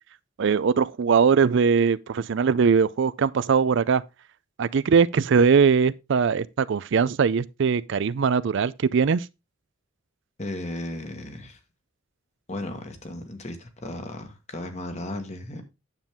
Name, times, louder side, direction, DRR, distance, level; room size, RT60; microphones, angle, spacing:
voice 1, 0.4-4.0 4.6-9.3, right 6 dB, 60° right, 0.4 m, -21 dB
voice 2, 10.4-11.6 12.5-15.6, left 1 dB, 35° left, 1.5 m, -35 dB
9.7 x 7.3 x 3.5 m
head